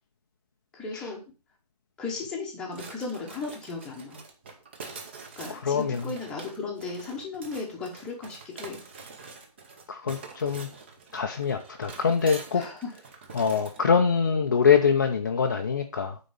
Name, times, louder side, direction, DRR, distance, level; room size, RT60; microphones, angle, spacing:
voice 1, 0.7-1.2 2.0-4.2 5.4-8.8 12.5-12.7, left 4 dB, 5° left, -2 dB, 1.0 m, -36 dB
sound 1, 2.7-13.8, right 4 dB, 15° right, 0.7 m, -45 dB
voice 2, 5.5-6.1 9.9-10.7 11.1-12.6 13.3-16.2, left 6 dB, 30° left, 3 dB, 0.5 m, -24 dB
9.2 x 3.8 x 6.6 m, 0.33 s
hypercardioid pair, 170°, 20 cm